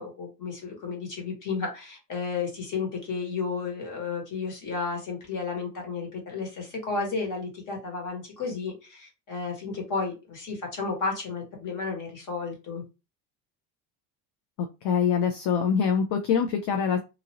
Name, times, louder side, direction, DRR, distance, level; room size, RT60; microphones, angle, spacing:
voice 1, 0.0-12.8, left 4 dB, 45° left, 0 dB, 1.4 m, -32 dB
voice 2, 14.8-17.0, left 7 dB, 65° left, 5 dB, 0.6 m, -24 dB
2.9 x 2.5 x 2.9 m, 0.28 s
cardioid pair, 150°, 45 cm